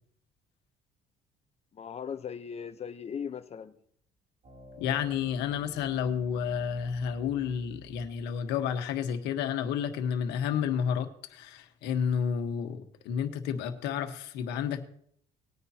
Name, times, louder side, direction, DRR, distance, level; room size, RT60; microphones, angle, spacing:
voice 1, 1.7-3.7, left 7 dB, 40° left, 1.0 m, -38 dB
sound 1, 4.4-8.4, equal, 40° right, 3.2 m, -50 dB
voice 2, 4.8-14.9, left 8 dB, 90° left, 1.4 m, -31 dB
19.5 x 9.6 x 2.9 m
cardioid pair, 110°, 17 cm